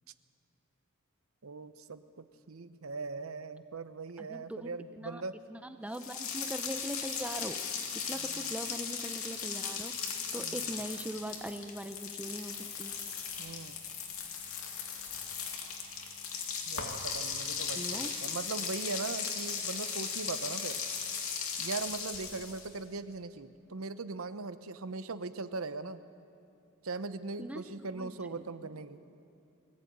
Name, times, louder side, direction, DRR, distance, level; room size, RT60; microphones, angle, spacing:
voice 1, 1.4-5.3 8.1-8.6 10.4-10.7 13.4-13.8 16.7-20.8 21.6-26.0 26.8-29.0, right 3 dB, 80° right, 13 dB, 0.8 m, -40 dB
voice 2, 4.2-5.2 5.5-7.8 8.1-12.9 17.7-18.1 27.4-27.6 27.9-28.7, right 1 dB, 5° right, 8 dB, 0.7 m, -41 dB
sound 1, 5.9-22.8, left 6 dB, 80° left, 2.5 m, -37 dB
22.0 x 15.0 x 8.7 m, 2.6 s
head